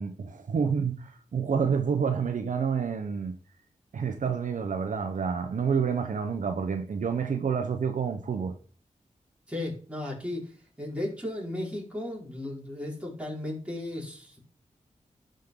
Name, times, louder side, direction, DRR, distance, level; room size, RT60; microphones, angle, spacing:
voice 1, 0.0-3.3 3.9-8.6, right 6 dB, 75° right, 1.0 m, -28 dB
voice 2, 9.5-14.4, left 1 dB, 10° right, 4.7 m, -35 dB
12.0 x 5.2 x 3.9 m
cardioid pair, 65°, 13 cm